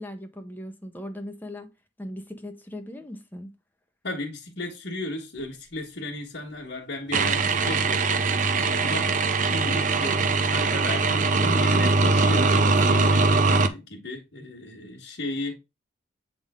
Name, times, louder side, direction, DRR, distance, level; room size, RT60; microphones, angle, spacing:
voice 1, 0.0-1.7 2.0-3.5, left 1 dB, 10° left, 0.7 m, -38 dB
voice 2, 4.0-15.6, left 2 dB, 75° left, 1.4 m, -35 dB
sound 1, 7.1-13.7, right 3 dB, 45° right, 0.5 m, -21 dB
7.8 x 3.6 x 3.6 m
head